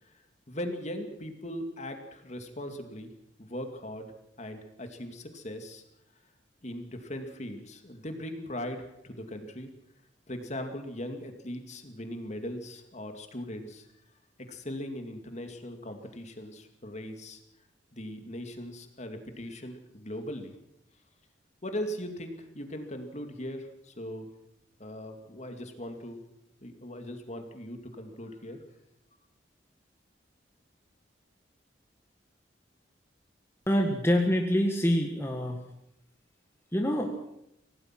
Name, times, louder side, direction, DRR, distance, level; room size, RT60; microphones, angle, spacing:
voice 1, 0.5-3.1 3.4-4.1 4.4-5.8 6.6-9.7 10.3-13.9 14.5-17.4 17.9-20.5 21.6-24.3 24.8-26.2 26.6-28.6, equal, 40° left, 6 dB, 2.4 m, -39 dB
voice 2, 33.7-35.6 36.7-37.2, equal, 15° left, 2 dB, 1.7 m, -26 dB
24.5 x 17.5 x 6.0 m, 0.79 s
head